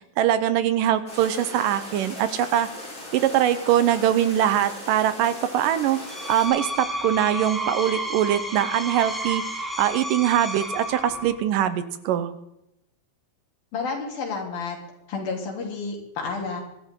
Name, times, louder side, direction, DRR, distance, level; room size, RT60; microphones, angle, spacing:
voice 1, 0.2-2.7 3.1-6.0 6.3-9.4 9.8-12.4, right 11 dB, 75° right, 12 dB, 2.4 m, -22 dB
sound 1, 1.1-6.5, left 1 dB, 20° left, 6.6 m, -39 dB
Screech, 5.9-11.4, right 1 dB, ahead, 1.8 m, -31 dB
voice 2, 13.7-14.8 15.1-16.6, left 4 dB, 85° left, 0 dB, 5.1 m, -30 dB
24.0 x 12.0 x 3.8 m, 0.84 s
omnidirectional pair, 4.1 m